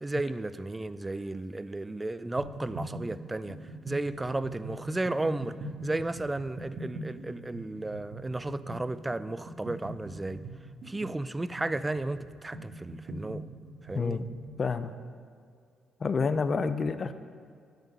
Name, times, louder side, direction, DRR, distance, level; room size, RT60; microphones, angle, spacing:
voice 1, 0.0-3.6 3.8-5.6 5.8-10.4 10.9-13.4 13.8-14.2, right 2 dB, 15° right, 14 dB, 0.4 m, -33 dB
sound 1, 2.4-14.6, right 1 dB, 70° right, 1.3 m, -42 dB
voice 2, 13.9-14.3 14.6-14.9 16.0-17.1, left 4 dB, 40° left, 12 dB, 0.5 m, -28 dB
9.1 x 7.6 x 5.3 m, 2.2 s
cardioid pair, 90°, 0 cm